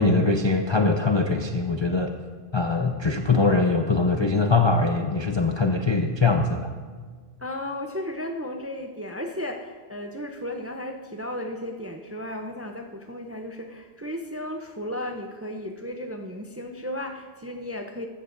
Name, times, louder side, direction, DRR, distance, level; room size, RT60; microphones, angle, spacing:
voice 1, 0.0-2.1 2.5-6.7, left 3 dB, 40° left, 4 dB, 0.4 m, -22 dB
voice 2, 7.4-18.1, left 1 dB, 20° right, 4 dB, 0.4 m, -34 dB
15.0 x 13.0 x 2.6 m, 1.5 s
omnidirectional pair, 1.2 m